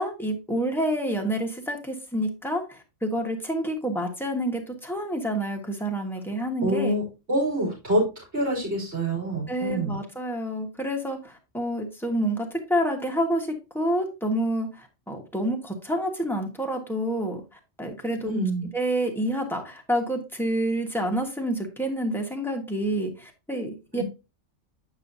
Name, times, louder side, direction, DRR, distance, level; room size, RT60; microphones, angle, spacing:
voice 1, 0.0-6.9 9.5-13.5 13.7-17.4 17.8-18.3 18.7-24.0, right 1 dB, ahead, 1 dB, 1.3 m, -28 dB
voice 2, 6.6-8.0 8.3-10.0 18.2-18.7 23.9-24.0, right 1 dB, 65° right, -4 dB, 4.1 m, -26 dB
8.8 x 5.5 x 2.7 m, 0.28 s
omnidirectional pair, 1.2 m